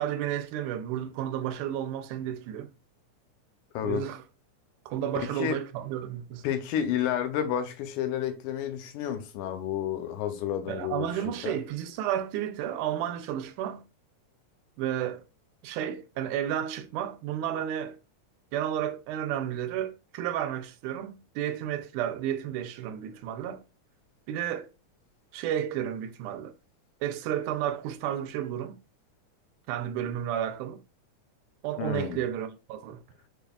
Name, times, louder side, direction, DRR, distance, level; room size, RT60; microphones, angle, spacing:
voice 1, 0.0-2.7 3.8-4.2 4.9-6.4 10.7-13.8 14.8-15.2 15.6-18.0 18.5-23.6 24.3-24.7 25.3-26.5 27.0-28.8 29.7-30.8 31.6-33.0, right 10 dB, 85° right, 2.1 m, -32 dB
voice 2, 6.4-11.6 31.8-32.2, left 9 dB, 85° left, 2.3 m, -31 dB
5.3 x 4.2 x 2.3 m
omnidirectional pair, 3.6 m